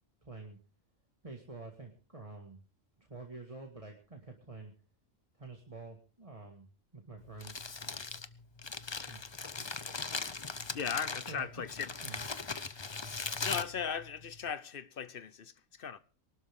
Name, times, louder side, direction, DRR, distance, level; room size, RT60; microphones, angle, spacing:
voice 1, 0.2-0.6 1.2-2.6 3.0-4.7 5.3-6.7 6.9-7.6 9.0-9.2 11.3-12.2, right 3 dB, 25° right, 2.0 m, -48 dB
Crumpling crinkling, 7.2-14.5, left 4 dB, 30° left, 0.6 m, -40 dB
voice 2, 10.5-11.9 13.4-16.0, left 7 dB, 50° left, 0.9 m, -38 dB
23.0 x 12.5 x 3.7 m
omnidirectional pair, 1.3 m